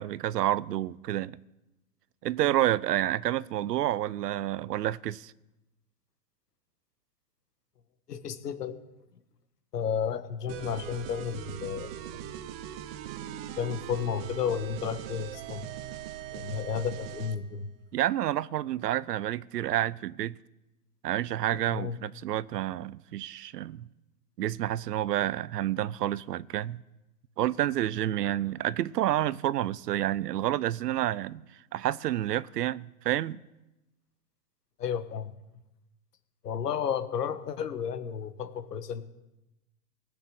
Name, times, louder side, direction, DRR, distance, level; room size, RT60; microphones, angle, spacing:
voice 1, 0.0-1.4 2.2-5.3 17.9-20.4 21.0-23.9 24.4-26.8 27.4-31.4 31.7-33.5, right 13 dB, 90° right, 0.7 m, -29 dB
voice 2, 8.1-8.8 9.7-11.9 13.6-15.7 16.3-17.7 21.7-22.0 34.8-35.3 36.4-39.1, left 7 dB, 90° left, 1.5 m, -32 dB
sound 1, 10.5-17.4, right 11 dB, 40° right, 0.9 m, -40 dB
19.0 x 6.8 x 7.6 m
hypercardioid pair, 135°, 47 cm